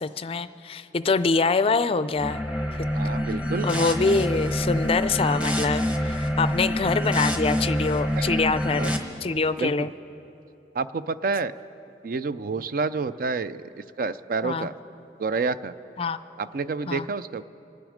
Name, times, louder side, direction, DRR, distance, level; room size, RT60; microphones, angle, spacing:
voice 1, 0.0-2.4 3.6-8.9 9.2-9.9 14.4-14.7 16.0-16.2 16.9-17.1, left 4 dB, 35° left, 13 dB, 0.4 m, -25 dB
sound 1, 2.1-9.0, equal, 5° right, 1.0 m, -26 dB
voice 2, 2.9-3.7 8.2-8.4 8.7-8.9 9.6-9.9 10.7-11.5 12.0-14.7 15.2-15.7 16.4-17.4, right 4 dB, 50° right, 14 dB, 0.4 m, -29 dB
26.0 x 9.4 x 5.0 m, 2.8 s
head